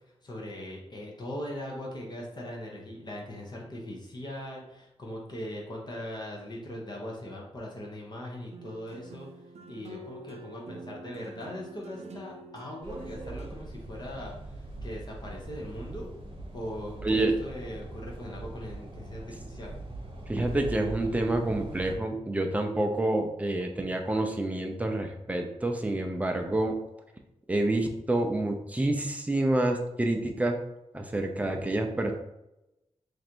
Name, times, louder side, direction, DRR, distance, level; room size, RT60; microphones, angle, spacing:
voice 1, 0.2-9.3 9.7-16.1 16.5-19.7, left 1 dB, 40° left, -2 dB, 0.8 m, -40 dB
sound 1, 8.5-13.5, right 2 dB, 70° right, 0.5 m, -46 dB
sound 2, 12.8-22.0, right 2 dB, 45° right, 0.9 m, -41 dB
voice 2, 20.3-26.8 27.5-30.6 30.9-32.1, right 2 dB, 10° right, 3 dB, 0.4 m, -28 dB
3.1 x 2.6 x 4.4 m, 0.91 s
wide cardioid pair, 140°, 12 cm